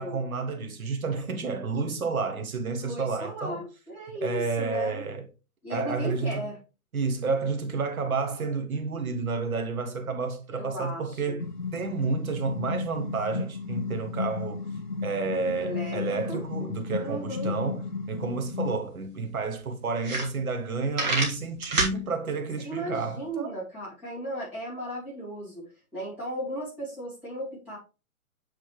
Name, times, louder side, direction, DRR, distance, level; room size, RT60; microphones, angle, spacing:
voice 1, 0.0-3.6 4.2-5.2 5.7-6.5 6.9-14.6 15.0-23.5, right 4 dB, 70° right, 1.4 m, -30 dB
voice 2, 2.8-5.0 5.6-6.6 10.5-11.4 15.6-16.5 17.0-17.5 22.6-27.8, equal, 5° right, 2.2 m, -36 dB
sound 1, 11.4-18.8, left 4 dB, 35° left, 0.4 m, -34 dB
sound 2, 19.0-19.1 19.6-19.7 20.0-20.7 20.9-22.0, right 3 dB, 30° right, 1.6 m, -26 dB
7.7 x 4.2 x 3.2 m
hypercardioid pair, 175°, 44 cm